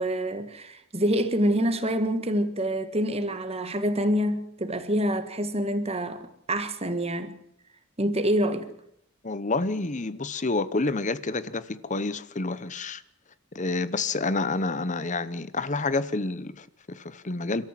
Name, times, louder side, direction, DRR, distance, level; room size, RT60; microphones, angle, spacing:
voice 1, 0.0-7.4 8.0-8.7, equal, 30° right, 1.8 m, -26 dB
voice 2, 9.2-13.0 13.5-17.7, left 3 dB, 35° left, 0.9 m, -29 dB
28.5 x 13.5 x 7.6 m
head